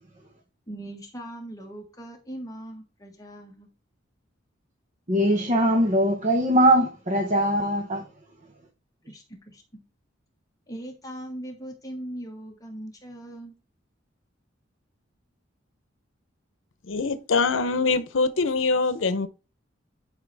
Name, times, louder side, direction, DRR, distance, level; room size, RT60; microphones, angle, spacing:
voice 1, 0.7-3.7 9.0-9.6 10.7-13.5, right 1 dB, 20° left, 1.7 m, -40 dB
voice 2, 5.1-8.0, right 1 dB, 40° right, 1.2 m, -21 dB
voice 3, 16.9-19.3, left 4 dB, 90° left, 0.8 m, -23 dB
10.5 x 5.7 x 3.4 m
head